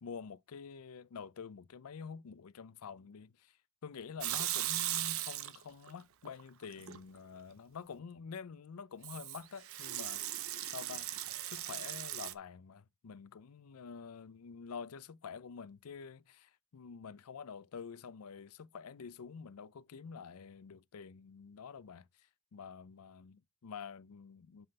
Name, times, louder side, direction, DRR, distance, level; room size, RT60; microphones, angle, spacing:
voice 1, 0.0-3.6 3.8-24.7, left 6 dB, 85° left, 0.5 m, -48 dB
Water tap faucet / Sink (filling or washing) / Liquid, 4.2-5.9 6.3-7.0 9.0-12.3, right 13 dB, 70° right, 0.6 m, -38 dB
5.7 x 5.4 x 5.3 m
head